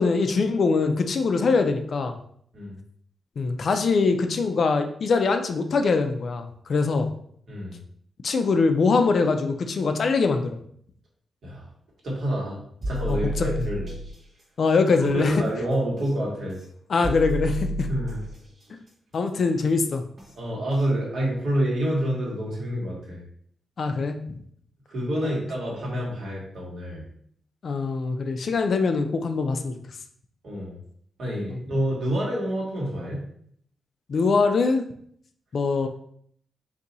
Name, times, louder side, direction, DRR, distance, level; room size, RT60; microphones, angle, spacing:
voice 1, 0.0-2.2 3.4-7.1 8.2-10.6 13.1-13.5 14.6-15.4 16.9-17.9 19.1-20.0 23.8-24.2 25.2-25.4 27.6-29.7 31.5-31.6 34.1-34.8 35.5-35.9, left 4 dB, 45° left, 7 dB, 0.3 m, -23 dB
voice 2, 7.5-7.8 11.4-11.7 12.0-13.9 15.1-16.6 17.9-18.2 20.4-23.2 24.9-27.0 30.4-30.7 31.2-33.2 35.8-35.9, right 1 dB, 55° right, -3 dB, 1.4 m, -28 dB
sound 1, 12.8-14.1 16.0-16.1 17.0-18.4 20.2-20.3 20.8-20.9, right 1 dB, 35° right, 1.2 m, -30 dB
4.1 x 2.6 x 3.9 m, 0.65 s
wide cardioid pair, 170°, 0 cm